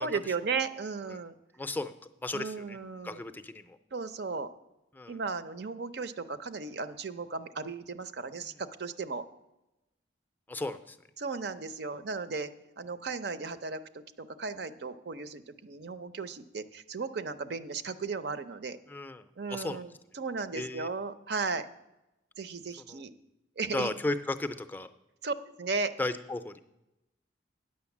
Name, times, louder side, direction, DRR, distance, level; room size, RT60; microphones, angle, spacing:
voice 1, 0.0-1.3 2.3-3.2 3.9-4.5 5.1-9.2 11.2-12.5 12.8-18.8 19.4-21.7 22.4-23.1 23.6-23.9 25.2-25.9, right 4 dB, 55° right, 11 dB, 0.6 m, -35 dB
voice 2, 1.6-1.9 2.2-2.8 3.0-3.8 5.0-5.2 10.5-11.0 18.9-19.8 20.5-20.9 22.9-23.0 23.7-24.9 26.0-26.6, left 2 dB, 10° left, 9 dB, 0.4 m, -35 dB
9.6 x 6.4 x 7.1 m, 0.95 s
head